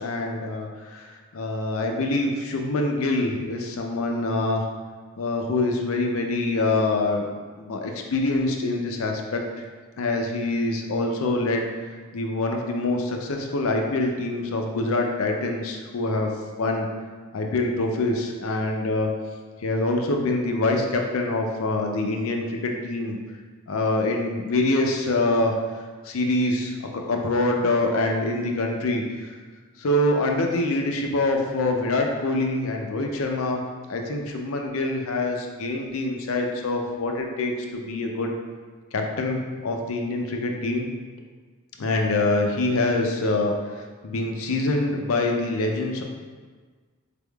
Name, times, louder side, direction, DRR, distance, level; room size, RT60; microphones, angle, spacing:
voice 1, 0.0-4.7 5.2-7.2 7.6-9.4 10.0-16.3 16.6-16.9 17.3-19.1 19.6-23.2 23.7-29.3 29.8-33.6 33.9-38.3 38.9-40.9 41.8-46.0, left 2 dB, 70° left, 2 dB, 0.5 m, -25 dB
4.2 x 3.4 x 2.3 m, 1.5 s
head